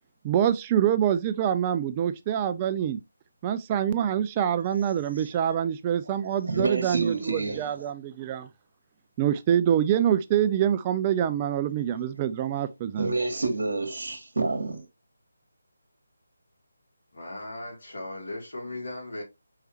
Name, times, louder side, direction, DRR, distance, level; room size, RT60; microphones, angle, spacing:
voice 1, 0.2-3.0 3.4-8.5 9.2-13.1, right 9 dB, 20° right, 0.3 m, -25 dB
voice 2, 6.4-7.7 13.0-14.8, right 3 dB, 60° right, 1.6 m, -28 dB
voice 3, 17.1-19.2, left 1 dB, 55° left, 1.9 m, -37 dB
4.6 x 3.2 x 2.9 m
figure-of-eight pair, 155°, 0 cm